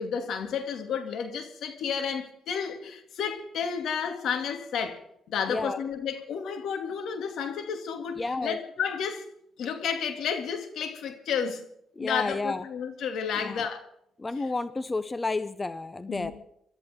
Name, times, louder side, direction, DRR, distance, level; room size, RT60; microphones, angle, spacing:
voice 1, 0.0-9.2 9.6-11.6 12.0-13.8 16.1-16.3, left 7 dB, 70° left, 2.6 m, -31 dB
voice 2, 5.5-5.8 8.2-8.6 12.0-12.6 13.4-13.7 14.2-16.3, left 3 dB, 20° left, 0.7 m, -31 dB
26.0 x 13.0 x 3.7 m
cardioid pair, 90°, 0 cm